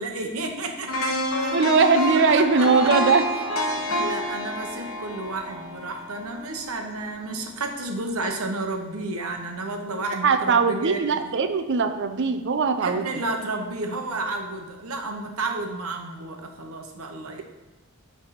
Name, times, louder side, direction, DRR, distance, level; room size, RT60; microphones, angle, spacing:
voice 1, 0.0-1.8 2.3-2.7 3.7-11.2 12.8-17.4, right 2 dB, 80° right, 4 dB, 0.9 m, -32 dB
sound 1, 0.9-6.9 7.3-7.4, left 1 dB, 65° left, 0.9 m, -28 dB
voice 2, 1.5-3.3 10.2-13.1, right 5 dB, 55° right, 9 dB, 0.5 m, -20 dB
6.3 x 3.5 x 5.8 m, 1.2 s
head